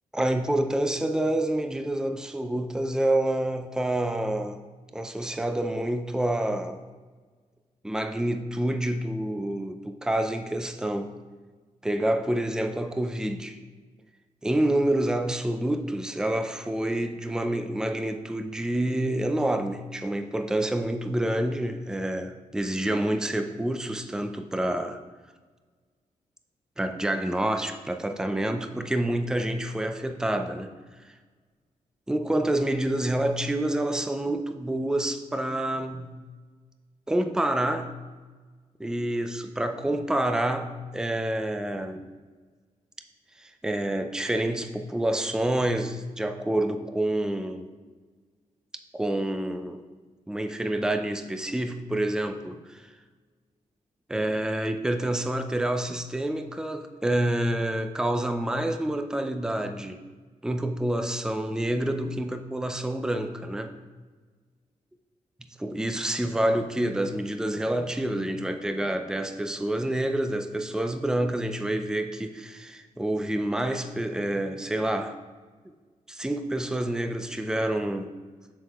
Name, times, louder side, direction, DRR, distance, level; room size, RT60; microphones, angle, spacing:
voice 1, 0.1-4.6 4.9-6.8 7.8-11.1 11.8-13.6 14.4-25.0 26.8-30.7 32.1-36.2 37.1-37.8 38.8-42.0 43.4-47.7 48.9-49.8 50.3-52.8 54.1-60.0 60.4-63.8 65.6-75.2 75.6-75.7 76.1-78.1, right 1 dB, 5° right, 6 dB, 0.5 m, -28 dB
7.6 x 6.4 x 2.4 m, 1.4 s
cardioid pair, 70°, 14 cm